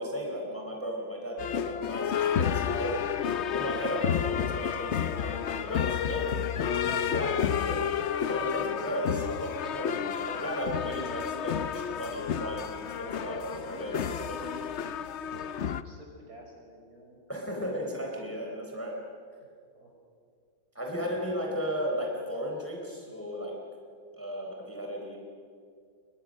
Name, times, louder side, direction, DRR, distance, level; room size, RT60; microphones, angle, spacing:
voice 1, 0.0-6.3 6.6-9.9 10.2-14.7 17.3-19.0 20.7-23.5 24.1-25.2, equal, 5° left, -1 dB, 3.8 m, -35 dB
sound 1, 1.4-15.8, left 8 dB, 70° left, 0.6 m, -31 dB
voice 2, 15.8-17.2 19.7-19.9 20.9-21.6, equal, 50° right, 0 dB, 5.9 m, -50 dB
29.5 x 22.5 x 6.5 m, 2.2 s
omnidirectional pair, 2.1 m